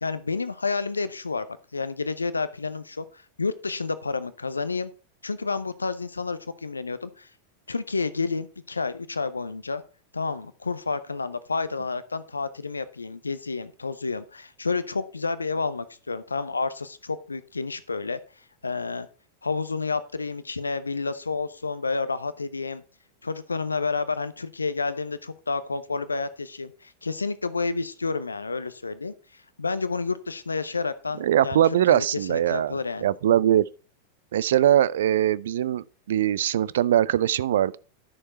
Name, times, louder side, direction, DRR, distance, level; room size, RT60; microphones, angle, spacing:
voice 1, 0.0-1.5 1.7-4.9 5.2-7.3 7.7-9.8 10.1-18.2 18.6-19.1 19.4-22.8 23.2-31.6 31.9-33.1, left 4 dB, 80° left, 0.6 m, -30 dB
voice 2, 31.2-33.7 34.3-37.8, right 11 dB, 60° right, 0.4 m, -22 dB
11.0 x 6.5 x 4.3 m
figure-of-eight pair, 90°, 0 cm